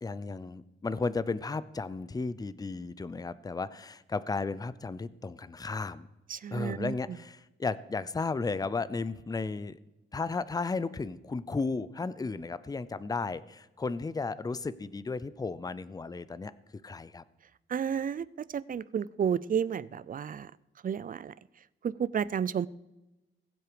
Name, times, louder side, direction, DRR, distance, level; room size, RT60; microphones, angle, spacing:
voice 1, 0.0-6.1 6.5-9.8 10.1-16.5 16.8-17.2, left 4 dB, 20° left, 17 dB, 0.5 m, -34 dB
voice 2, 6.3-6.9 17.7-18.3 18.5-20.5 20.8-21.3 21.8-22.7, right 8 dB, 40° right, 20 dB, 0.4 m, -31 dB
20.5 x 7.7 x 5.0 m, 1.0 s
wide cardioid pair, 140°, 21 cm